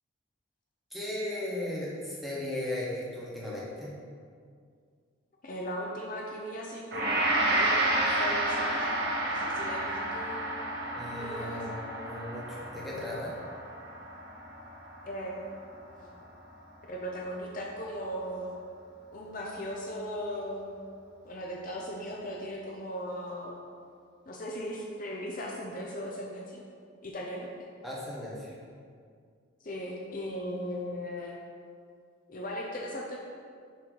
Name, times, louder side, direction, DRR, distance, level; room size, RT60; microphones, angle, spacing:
voice 1, 0.9-4.0 10.9-13.4 27.8-28.6, left 1 dB, ahead, -7 dB, 1.1 m, -36 dB
voice 2, 5.4-7.2 7.5-10.6 11.2-11.6 15.0-15.6 16.0-16.2 16.8-18.6 19.1-20.7 21.2-23.6 24.3-26.6 27.0-27.5 29.6-31.4 32.3-33.2, equal, 45° left, -1 dB, 0.5 m, -37 dB
Gong, 6.9-16.1, right 1 dB, 55° right, 0.8 m, -31 dB
6.0 x 3.0 x 5.4 m, 2.2 s
head